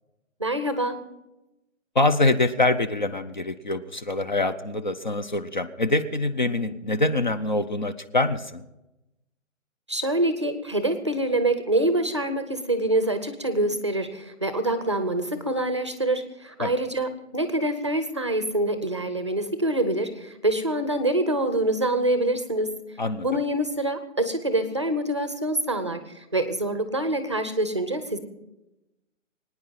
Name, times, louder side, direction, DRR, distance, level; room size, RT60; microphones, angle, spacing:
voice 1, 0.4-1.0 9.9-22.7 23.2-26.0 26.3-28.2, right 1 dB, 25° right, 10 dB, 0.6 m, -25 dB
voice 2, 1.9-8.6 16.6-16.7 23.0-23.3, left 2 dB, 35° left, 11 dB, 0.6 m, -24 dB
23.5 x 9.6 x 5.6 m, 0.97 s
hypercardioid pair, 180°, 39 cm